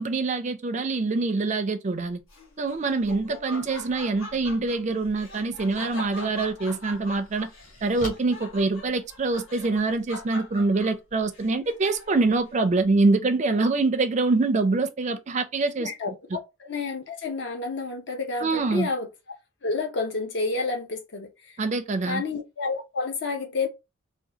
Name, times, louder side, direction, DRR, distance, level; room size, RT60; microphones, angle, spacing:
voice 1, 0.0-2.2 2.6-7.5 7.8-15.9 18.4-18.9 21.6-22.2, right 3 dB, 35° right, 0.4 m, -25 dB
Laughter, 2.3-12.3, left 2 dB, 80° left, 1.2 m, -42 dB
sound 1, 5.9-6.0 6.5-9.5, left 1 dB, 40° left, 1.2 m, -43 dB
voice 2, 15.8-19.1 19.6-21.6 22.1-23.7, left 3 dB, 55° left, 0.6 m, -30 dB
3.6 x 2.3 x 2.8 m
head